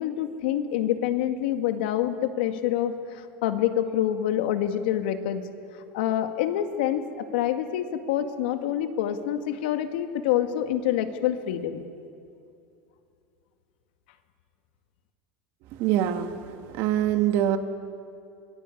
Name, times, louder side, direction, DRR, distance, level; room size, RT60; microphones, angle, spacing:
voice 1, 0.0-2.9 3.4-5.4 5.9-7.0 7.3-11.8, left 11 dB, 80° left, 7 dB, 2.0 m, -26 dB
voice 2, 15.8-16.3 16.7-17.6, right 11 dB, 55° right, 7 dB, 2.0 m, -23 dB
25.5 x 21.0 x 8.6 m, 2.5 s
supercardioid pair, 135°, 5 cm